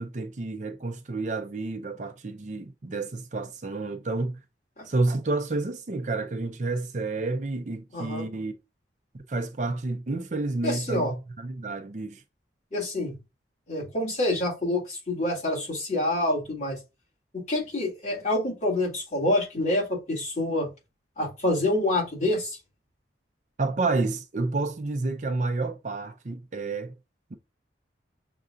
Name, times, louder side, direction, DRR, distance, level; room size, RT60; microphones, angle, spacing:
voice 1, 0.0-4.4 4.9-8.5 9.1-12.2 23.6-26.9 27.3-27.4, right 3 dB, 40° right, 0.5 m, -30 dB
voice 2, 7.9-8.2 10.6-11.1 12.7-13.2 13.7-16.8 17.5-20.7 21.2-22.6, left 1 dB, 40° left, 2.1 m, -27 dB
6.6 x 2.5 x 2.5 m
head